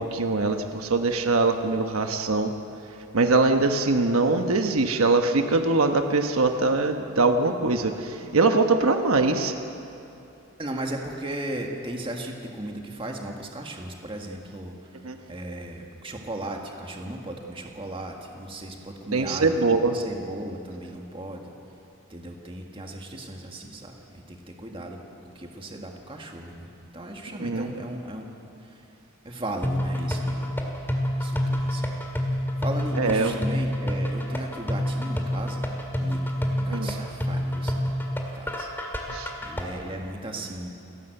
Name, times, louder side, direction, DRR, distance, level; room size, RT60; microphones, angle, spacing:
voice 1, 0.0-2.5 3.1-9.5 15.0-15.2 19.1-20.0 27.4-27.7 33.0-33.3 36.7-36.9 39.1-39.3, right 3 dB, 90° right, 6 dB, 1.1 m, -22 dB
voice 2, 10.6-15.0 15.3-19.7 19.9-21.5 22.1-28.9 29.2-30.5 31.2-31.9 32.3-35.7 36.0-36.2 36.5-37.9 38.3-38.7 39.0-40.7, right 1 dB, 25° right, 1 dB, 1.8 m, -36 dB
sound 1, 29.6-39.6, equal, 10° left, 1.9 m, -28 dB
29.0 x 11.5 x 7.9 m, 2.9 s
head